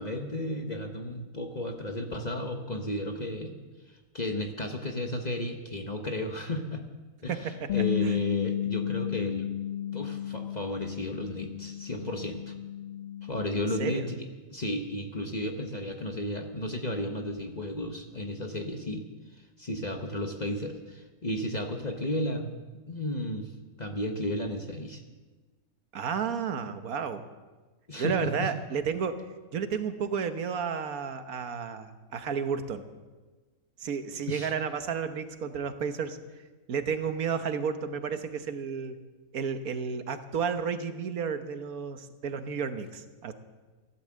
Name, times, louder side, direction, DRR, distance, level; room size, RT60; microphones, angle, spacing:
voice 1, 0.0-3.5 3.9-6.8 7.2-9.5 9.9-12.6 13.2-14.2 14.5-19.1 19.3-23.5 23.8-25.0 27.9-28.5 34.3-34.5, left 1 dB, 30° left, 4 dB, 1.1 m, -33 dB
Bass guitar, 7.7-13.9, left 10 dB, 55° left, 0.8 m, -33 dB
voice 2, 25.9-27.2 28.0-29.1 29.5-32.8 33.8-36.2 36.7-39.0 39.3-43.3, right 6 dB, 75° right, 9 dB, 1.5 m, -32 dB
15.5 x 11.5 x 7.6 m, 1.3 s
omnidirectional pair, 1.5 m